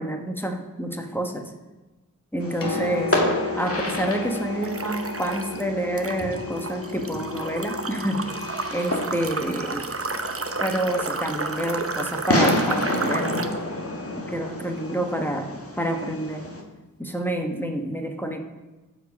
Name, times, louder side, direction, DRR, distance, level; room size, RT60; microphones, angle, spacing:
voice 1, 0.0-1.5 2.3-3.2 3.6-8.3 8.7-10.0 10.6-13.3 14.2-16.5 17.0-18.4, right 1 dB, 5° left, 4 dB, 1.3 m, -28 dB
Piano, 2.4-16.1 17.2-17.3, left 4 dB, 85° left, 1.3 m, -37 dB
Fireworks, 2.4-16.6, left 1 dB, 40° left, 1.7 m, -30 dB
sound 1, 4.6-5.6 6.0-13.6, right 4 dB, 40° right, 0.7 m, -32 dB
14.0 x 5.0 x 5.3 m, 1.1 s
wide cardioid pair, 55°, 34 cm